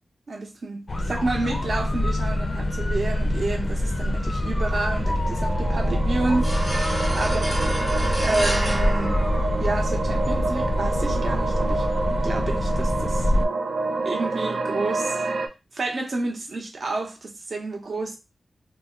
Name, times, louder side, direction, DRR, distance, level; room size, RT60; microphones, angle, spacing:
voice 1, 0.3-7.6 8.2-9.2 9.6-11.9 12.2-13.3 14.0-15.2 15.7-18.2, right 2 dB, 60° right, 0.8 m, -29 dB
sound 1, 0.9-13.4, left 1 dB, 30° left, 0.4 m, -25 dB
sound 2, 4.7-15.5, right 3 dB, 85° right, 0.5 m, -28 dB
sound 3, 6.4-10.0, right 1 dB, 15° right, 0.9 m, -31 dB
2.6 x 2.1 x 3.7 m
wide cardioid pair, 135°, 0 cm